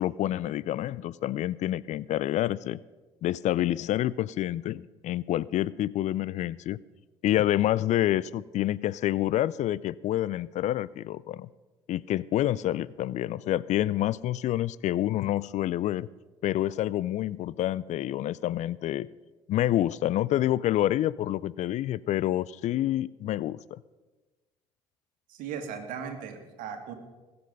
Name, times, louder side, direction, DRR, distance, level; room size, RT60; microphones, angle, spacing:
voice 1, 0.0-2.8 3.2-6.8 7.2-11.5 11.9-16.1 16.4-19.1 19.5-23.8, left 13 dB, 55° left, 21 dB, 0.4 m, -28 dB
voice 2, 25.3-26.9, right 7 dB, 65° right, 7 dB, 1.8 m, -37 dB
20.5 x 6.9 x 5.3 m, 1.2 s
hypercardioid pair, 55°, 15 cm